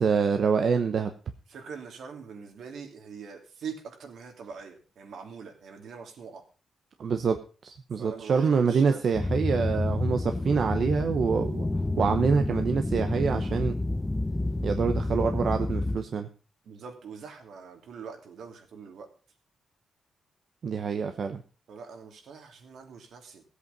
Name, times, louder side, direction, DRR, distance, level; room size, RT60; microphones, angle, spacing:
voice 1, 0.0-1.1 7.0-7.4 7.6-11.7 12.0-13.7 14.6-16.3 20.6-21.4, right 5 dB, 55° right, 7 dB, 0.9 m, -26 dB
voice 2, 1.5-6.4 8.0-9.0 16.6-19.1 21.7-23.4, right 6 dB, 75° right, 4 dB, 2.9 m, -43 dB
sound 1, 9.1-16.0, left 2 dB, 10° left, 0.5 m, -29 dB
16.0 x 8.3 x 5.3 m, 0.36 s
wide cardioid pair, 155°, 0 cm